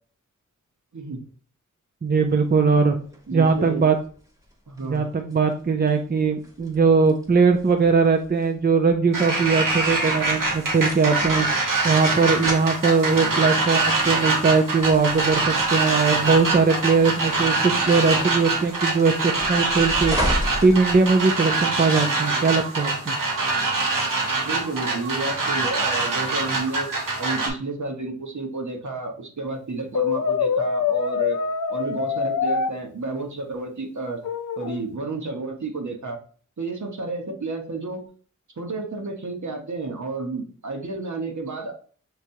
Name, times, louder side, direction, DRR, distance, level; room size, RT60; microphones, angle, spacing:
voice 1, 2.0-3.0 3.3-4.0 4.8-11.5 11.8-20.2 20.6-23.2, right 4 dB, 30° right, 4 dB, 0.6 m, -20 dB
sound 1, 2.2-21.6, equal, 10° right, 1.3 m, -36 dB
voice 2, 3.3-3.9 4.7-5.1 13.2-13.3 24.4-26.9 27.2-31.4 31.7-34.2 34.6-36.2 36.6-38.0 38.6-41.7, right 3 dB, 65° right, 2 dB, 1.2 m, -31 dB
sound 2, 9.1-27.5, right 3 dB, 85° right, 1.2 m, -24 dB
Brass instrument, 29.9-32.7 34.2-34.8, left 6 dB, 70° left, 0.5 m, -24 dB
6.0 x 3.3 x 2.7 m, 0.43 s
wide cardioid pair, 65°, 31 cm